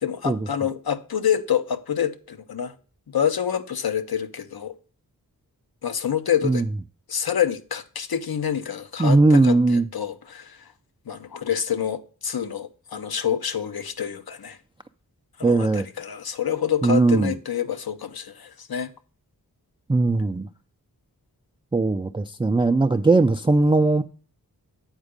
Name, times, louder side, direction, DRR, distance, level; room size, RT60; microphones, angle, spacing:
voice 1, 0.0-2.7 3.1-4.7 5.8-6.6 7.1-10.6 11.1-14.6 15.4-18.9, left 8 dB, 70° left, 0.7 m, -27 dB
voice 2, 9.0-9.9 15.4-15.9 16.8-17.3 19.9-20.5 21.7-24.0, right 3 dB, 15° right, 0.3 m, -19 dB
8.2 x 4.4 x 5.0 m
wide cardioid pair, 65°, 38 cm